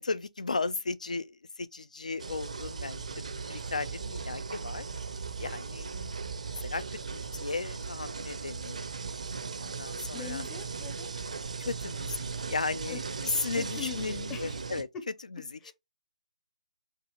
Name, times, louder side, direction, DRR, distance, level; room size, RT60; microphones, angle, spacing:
voice 1, 0.0-3.0 3.5-4.9 5.4-5.9 6.6-8.8 9.6-10.4 11.6-12.2 12.5-14.9 15.3-15.7, left 4 dB, 85° left, 0.4 m, -35 dB
sound 1, 2.2-14.8, right 5 dB, 75° right, 0.5 m, -38 dB
voice 2, 10.1-11.1 12.9-13.0 13.5-14.6 14.9-15.0 15.6-15.7, left 7 dB, 15° left, 0.5 m, -41 dB
4.4 x 2.5 x 2.9 m
figure-of-eight pair, 155°, 4 cm